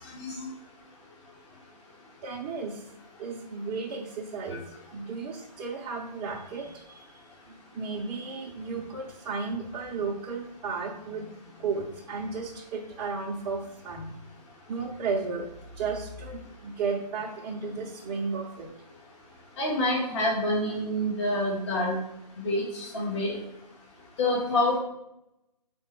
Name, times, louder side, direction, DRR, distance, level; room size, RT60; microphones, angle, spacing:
voice 1, 0.1-0.5 19.6-22.0 22.4-23.4 24.2-24.8, left 1 dB, 45° left, -4 dB, 1.8 m, -27 dB
voice 2, 2.2-2.8 3.2-4.6 4.9-7.0 7.7-14.1 14.7-15.5 15.8-18.7, right 4 dB, 20° right, -4 dB, 0.6 m, -34 dB
4.5 x 4.2 x 5.8 m, 0.85 s
figure-of-eight pair, 145°, 21 cm